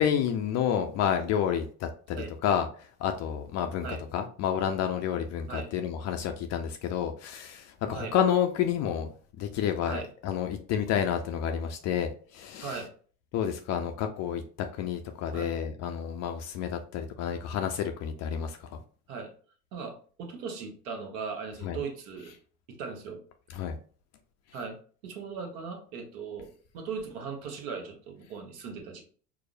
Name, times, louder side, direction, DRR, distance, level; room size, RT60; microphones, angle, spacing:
voice 1, 0.0-2.2 2.4-3.9 4.1-9.1 9.4-12.8 13.3-18.8 21.6-21.8 23.5-23.8, left 8 dB, 35° left, 0.4 m, -30 dB
voice 2, 12.6-12.9 15.3-15.5 17.5-17.6 19.1-19.3 19.7-22.4 22.7-23.2 24.5-24.8 25.0-29.0, right 5 dB, 60° right, 1.1 m, -38 dB
4.7 x 2.0 x 2.5 m
hypercardioid pair, 75°, 47 cm